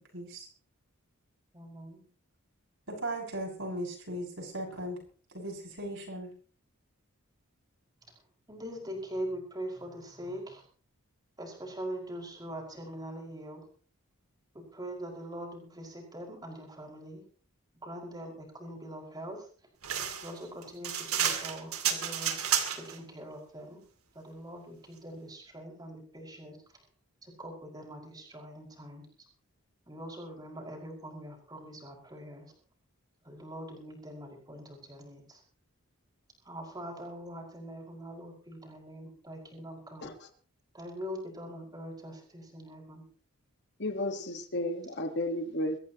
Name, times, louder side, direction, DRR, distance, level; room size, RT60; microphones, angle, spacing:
voice 1, 0.1-0.5 2.9-5.0 5.3-6.3, right 1 dB, 60° right, 0 dB, 6.7 m, -37 dB
voice 2, 1.5-2.0 8.5-10.6 11.4-13.6 14.7-17.2 17.8-19.5 20.2-23.8 24.1-26.6 27.2-29.1 29.9-32.5 33.2-35.4 36.4-40.1 40.7-43.1, right 1 dB, 20° right, 0 dB, 5.5 m, -43 dB
sound 1, 19.8-23.0, right 9 dB, 85° right, 2.5 m, -31 dB
voice 3, 43.8-45.8, left 1 dB, 50° left, 7 dB, 1.6 m, -33 dB
23.5 x 14.5 x 3.0 m, 0.41 s
head